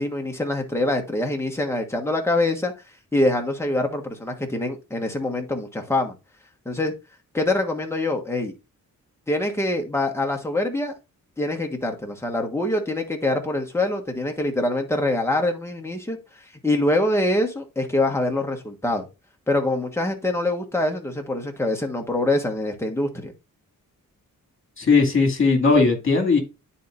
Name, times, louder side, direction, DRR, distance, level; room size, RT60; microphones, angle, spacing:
voice 1, 0.0-2.7 3.1-6.1 6.6-6.9 7.3-8.5 9.3-10.9 11.4-16.2 16.6-19.1 19.5-23.3, left 1 dB, 10° left, 2 dB, 1.3 m, -24 dB
voice 2, 24.8-26.4, left 4 dB, 35° left, 3 dB, 2.2 m, -18 dB
10.0 x 4.3 x 2.5 m, 0.27 s
wide cardioid pair, 110°, 34 cm